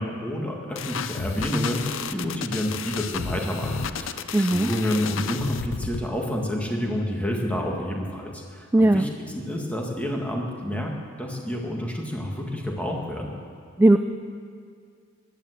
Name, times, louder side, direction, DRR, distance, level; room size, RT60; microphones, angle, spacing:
voice 1, 0.0-9.1 9.4-10.9 11.2-13.4, equal, 5° left, 0 dB, 1.8 m, -29 dB
sound 1, 0.8-6.1, left 6 dB, 65° left, 0.6 m, -32 dB
voice 2, 4.3-4.7 8.7-9.1 13.8-14.0, right 1 dB, 10° right, 8 dB, 0.3 m, -17 dB
15.5 x 10.5 x 8.1 m, 2.2 s
head